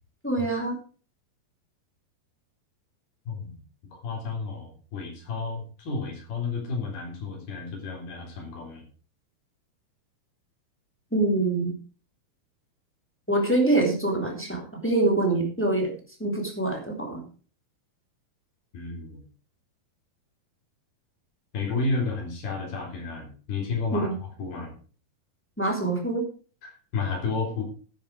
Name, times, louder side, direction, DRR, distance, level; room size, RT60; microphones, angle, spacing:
voice 1, 0.2-0.8 11.1-11.7 13.3-15.9 16.2-17.2 23.9-24.2 25.6-26.2, right 2 dB, 5° left, 0 dB, 2.8 m, -25 dB
voice 2, 3.3-3.6 3.9-8.8 18.7-19.2 21.5-24.7 26.6-27.6, left 4 dB, 80° left, 0 dB, 5.7 m, -32 dB
12.0 x 9.3 x 4.8 m, 0.39 s
omnidirectional pair, 4.3 m